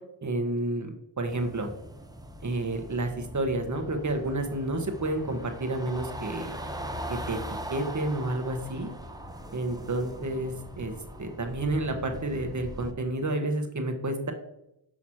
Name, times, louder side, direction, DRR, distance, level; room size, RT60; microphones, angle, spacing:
voice 1, 0.2-1.7 2.4-6.6 7.3-7.4 7.7-8.9 9.5-10.9 11.2-14.3, right 2 dB, 35° right, 5 dB, 1.3 m, -30 dB
sound 1, 1.3-12.9, equal, 10° right, 0.9 m, -41 dB
6.2 x 5.8 x 2.9 m, 0.83 s
supercardioid pair, 45°, 49 cm